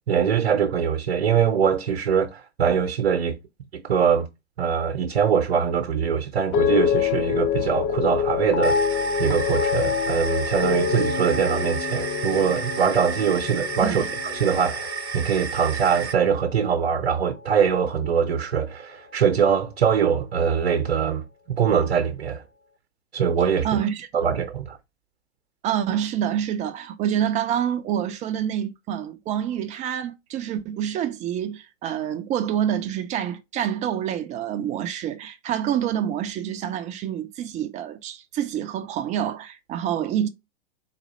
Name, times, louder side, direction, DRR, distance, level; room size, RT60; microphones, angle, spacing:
voice 1, 0.1-3.4 3.7-4.3 4.6-8.9 9.2-14.0 14.3-22.4 23.1-23.8 24.1-24.8, right 7 dB, 65° right, 0.9 m, -23 dB
sound 1, 6.5-16.9 17.2-17.7, left 7 dB, 25° left, 0.3 m, -26 dB
sound 2, 8.6-16.1, right 6 dB, 90° right, 0.7 m, -33 dB
voice 2, 23.6-24.1 25.6-40.3, right 10 dB, 20° right, 0.6 m, -27 dB
4.1 x 2.6 x 3.9 m
figure-of-eight pair, 105°, 33 cm